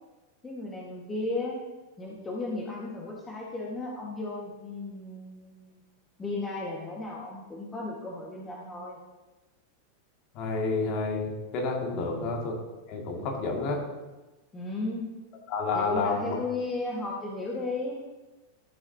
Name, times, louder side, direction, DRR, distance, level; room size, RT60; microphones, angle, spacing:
voice 1, 0.4-1.6 2.0-5.8 6.2-9.0 11.9-12.3 14.5-15.1 15.7-18.0, left 2 dB, 15° left, -4 dB, 1.6 m, -35 dB
voice 2, 10.4-12.5 12.9-13.8 15.5-16.4, left 3 dB, 40° left, 0 dB, 2.3 m, -29 dB
14.0 x 8.0 x 2.9 m, 1.1 s
figure-of-eight pair, 90°, 0 cm